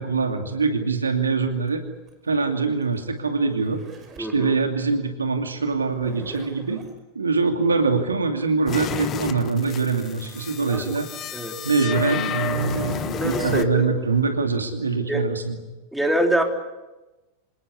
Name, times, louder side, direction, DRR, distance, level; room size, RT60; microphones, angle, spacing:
voice 1, 0.0-1.8 2.2-3.8 4.2-6.8 7.1-11.1 11.6-15.6, right 4 dB, 75° right, 5 dB, 2.6 m, -23 dB
Zipper (clothing), 1.7-4.4 5.7-7.0 9.6-9.7 9.9-10.9 11.4-11.5 12.2-14.2, right 4 dB, 25° right, 5.4 m, -45 dB
voice 2, 4.2-4.5 10.7-11.0 11.3-11.7 13.1-13.9 15.1-15.2 15.9-16.4, right 1 dB, 5° right, 2 dB, 3.9 m, -25 dB
sound 1, 8.7-13.6, left 9 dB, 30° left, 1.4 m, -31 dB
27.5 x 19.0 x 9.7 m, 1.1 s
figure-of-eight pair, 90°, 0 cm